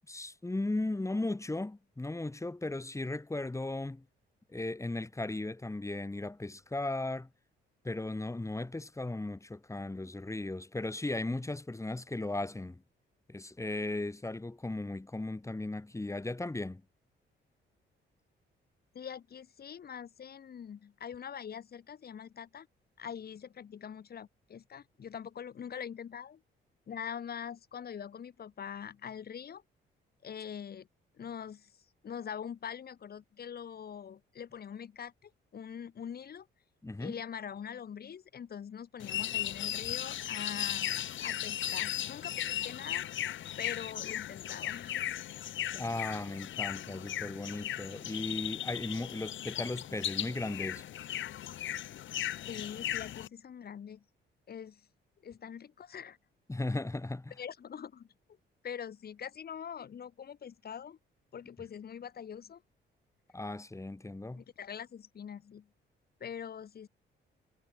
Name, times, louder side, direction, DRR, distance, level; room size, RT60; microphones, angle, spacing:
voice 1, 0.1-4.0 4.5-7.3 7.8-12.8 13.3-16.8 36.8-37.2 45.7-50.9 56.5-57.3 63.3-64.4, left 2 dB, 15° left, 7.9 m, -36 dB
voice 2, 18.9-22.7 23.0-26.4 26.9-29.6 30.2-30.9 31.2-31.7 32.0-36.5 37.0-43.1 43.6-45.0 52.5-54.0 54.5-54.8 55.2-56.2 57.4-58.1 58.6-61.0 61.3-62.6 64.4-65.7 66.2-66.9, left 8 dB, 50° left, 3.2 m, -43 dB
sound 1, 39.0-53.3, left 12 dB, 75° left, 3.4 m, -37 dB
cardioid pair, 90°, 20 cm